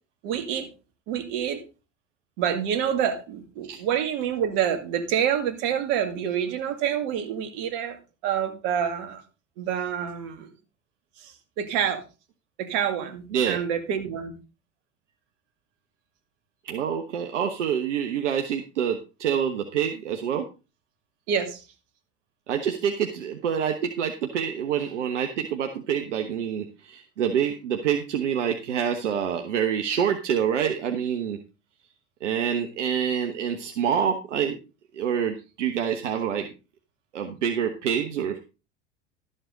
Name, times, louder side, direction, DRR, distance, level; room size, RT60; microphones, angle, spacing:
voice 1, 0.2-0.7 1.1-1.6 2.4-9.2 9.6-10.5 11.2-12.0 12.6-14.4 21.3-21.6, right 8 dB, 65° right, 8 dB, 2.2 m, -27 dB
voice 2, 16.6-20.5 22.5-31.4 32.2-34.6 34.9-36.5 37.1-38.4, right 8 dB, 85° right, 5 dB, 1.2 m, -26 dB
12.5 x 7.9 x 3.9 m, 0.31 s
hypercardioid pair, 75°, 35 cm